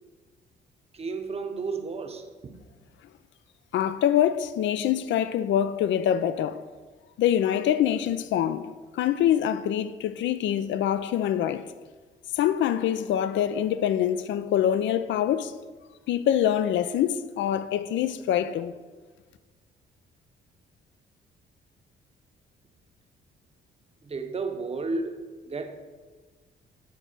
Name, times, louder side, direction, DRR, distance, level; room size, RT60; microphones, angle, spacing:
voice 1, 1.0-2.5 24.1-25.2 25.5-25.8, right 3 dB, 30° right, 0.8 m, -32 dB
voice 2, 3.7-6.6 7.2-11.7 12.3-15.5 16.1-18.7, left 10 dB, 70° left, 0.4 m, -25 dB
9.3 x 3.9 x 6.2 m
cardioid pair, 90°, 20 cm